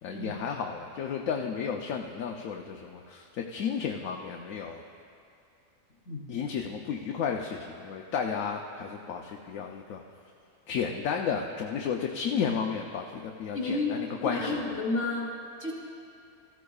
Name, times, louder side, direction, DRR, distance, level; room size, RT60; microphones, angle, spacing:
voice 1, 0.0-4.8 6.3-10.0 10.7-14.6, left 6 dB, 70° left, 2 dB, 1.0 m, -33 dB
voice 2, 13.5-15.3 15.6-15.7, left 3 dB, 55° left, -4 dB, 3.2 m, -31 dB
18.0 x 14.5 x 2.4 m, 2.5 s
omnidirectional pair, 1.5 m